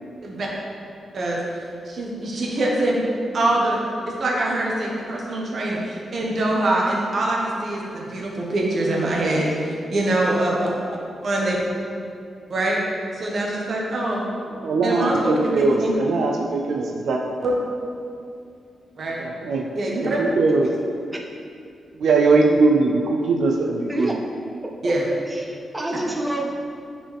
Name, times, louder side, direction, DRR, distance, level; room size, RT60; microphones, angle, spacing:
voice 1, 1.8-3.0 3.3-3.8 4.0-9.5 9.9-10.5 11.2-11.6 12.5-12.8 13.2-14.3 14.8-15.9 17.4-17.5 19.0-19.2 19.7-20.2 24.8-25.0, right 1 dB, 50° right, -3 dB, 1.3 m, -24 dB
voice 2, 14.6-17.4 19.2-19.7 20.0-20.7 21.9-24.2, right 3 dB, 80° right, 1 dB, 0.5 m, -21 dB
voice 3, 24.8-26.5, right 1 dB, 10° right, 0 dB, 0.5 m, -28 dB
8.9 x 4.7 x 3.4 m, 2.4 s
wide cardioid pair, 130°, 0 cm